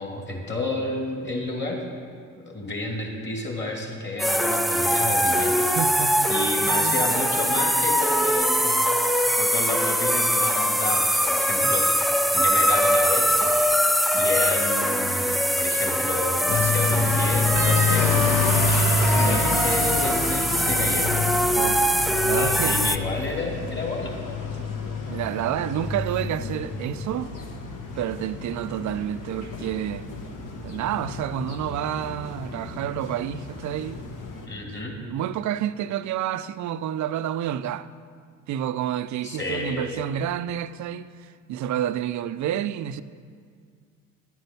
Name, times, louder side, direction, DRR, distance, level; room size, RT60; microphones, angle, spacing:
voice 1, 0.0-1.8 2.4-5.7 6.3-8.8 9.4-12.0 12.3-13.5 14.1-18.2 19.2-21.2 22.4-24.3 34.5-34.9 39.2-40.0, left 2 dB, 30° left, 2.7 m, -31 dB
sound 1, 4.2-23.0, equal, ahead, 0.3 m, -22 dB
voice 2, 5.5-6.3 6.7-7.1 11.6-11.7 19.1-19.4 21.5-22.8 24.6-24.7 25.1-27.3 28.0-30.1 30.6-34.1 34.9-37.9 38.5-43.0, right 10 dB, 50° right, 0.5 m, -29 dB
sound 2, 16.5-34.5, left 4 dB, 55° left, 1.6 m, -28 dB
sound 3, 17.6-20.7 21.0-21.6 22.6-24.1 24.7-25.0 26.3-26.6 28.1-28.2, right 2 dB, 85° right, 0.9 m, -39 dB
10.5 x 9.2 x 5.4 m
hypercardioid pair, 65°, 38 cm